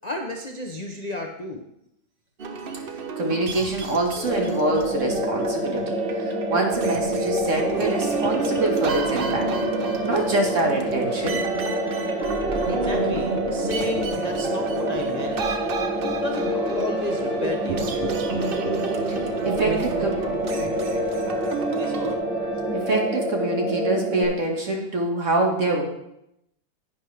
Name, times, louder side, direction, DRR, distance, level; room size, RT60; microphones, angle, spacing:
voice 1, 0.0-1.7 12.6-15.6 16.2-18.1 19.7-19.9 20.6-20.8 21.7-22.2, left 2 dB, 60° left, 2 dB, 0.4 m, -33 dB
sound 1, 2.4-22.2, right 5 dB, 70° right, 0.5 m, -31 dB
voice 2, 3.2-9.5 10.0-11.4 19.4-20.2 22.7-25.8, right 2 dB, 45° right, 1 dB, 1.7 m, -25 dB
sound 2, 4.3-24.2, equal, 90° right, 2.3 m, -27 dB
sound 3, 7.6-22.9, left 1 dB, 15° left, 1.6 m, -42 dB
10.5 x 9.3 x 3.3 m, 0.81 s
omnidirectional pair, 1.9 m